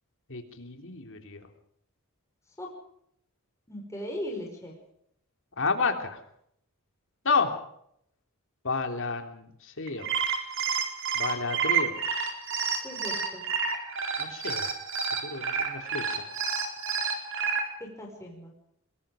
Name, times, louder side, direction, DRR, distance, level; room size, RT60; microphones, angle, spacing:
voice 1, 0.3-1.5 5.6-6.2 7.2-7.5 8.6-10.1 11.1-12.0 14.2-14.7 15.2-16.3, left 4 dB, 60° left, 5 dB, 3.2 m, -30 dB
voice 2, 3.7-4.8 12.8-13.5 17.8-18.5, left 1 dB, 15° left, 0 dB, 5.3 m, -38 dB
sound 1, 9.9-17.6, right 6 dB, 60° right, 4.3 m, -29 dB
24.0 x 22.0 x 5.1 m, 0.72 s
head